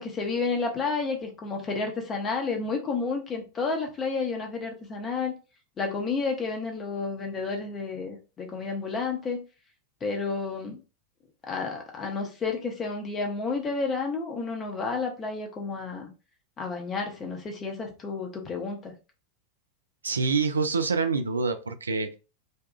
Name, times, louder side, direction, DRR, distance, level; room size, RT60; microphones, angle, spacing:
voice 1, 0.0-5.4 5.8-9.4 10.0-10.8 11.4-16.1 16.6-18.9, left 4 dB, 25° left, 0.7 m, -31 dB
voice 2, 20.0-22.1, right 4 dB, 75° right, 0.3 m, -26 dB
2.7 x 2.3 x 2.2 m
figure-of-eight pair, 90°, 0 cm